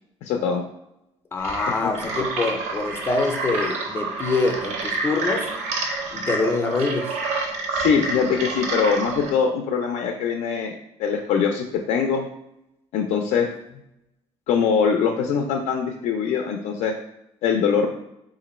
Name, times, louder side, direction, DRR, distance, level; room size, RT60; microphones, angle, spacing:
voice 1, 0.2-0.6 1.8-1.9 7.7-12.3 12.9-13.5 14.5-16.9 17.4-17.9, left 6 dB, 85° left, 3 dB, 0.4 m, -22 dB
voice 2, 1.3-5.5 6.1-7.2, left 3 dB, 20° left, 5 dB, 0.4 m, -25 dB
sound 1, 1.4-9.3, right 3 dB, 85° right, 0.7 m, -28 dB
2.9 x 2.5 x 4.1 m, 0.83 s
cardioid pair, 165°, 12 cm